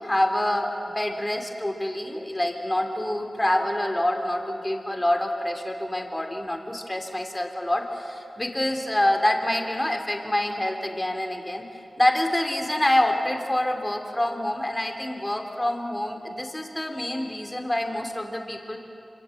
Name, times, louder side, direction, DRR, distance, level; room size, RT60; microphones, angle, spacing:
voice 1, 0.0-11.7 12.0-18.8, left 1 dB, 20° left, 3 dB, 3.2 m, -26 dB
26.5 x 26.0 x 7.9 m, 2.7 s
wide cardioid pair, 65°, 0 cm